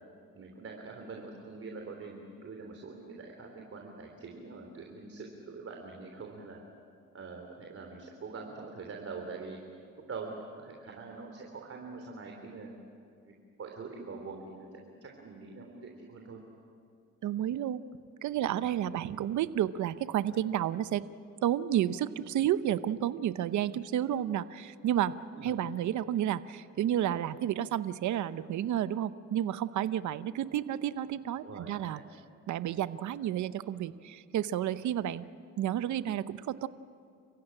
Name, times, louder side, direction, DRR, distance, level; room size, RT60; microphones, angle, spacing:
voice 1, 0.3-6.6 7.1-9.6 10.0-12.7 13.3-16.4 25.4-25.6 31.4-32.0, right 4 dB, 50° right, 1 dB, 3.4 m, -44 dB
voice 2, 17.2-17.8 18.2-21.0 21.4-25.1 25.4-32.0 32.5-35.2 35.6-36.7, right 11 dB, 70° right, 14 dB, 0.8 m, -31 dB
29.5 x 15.5 x 9.9 m, 2.4 s
cardioid pair, 90°, 30 cm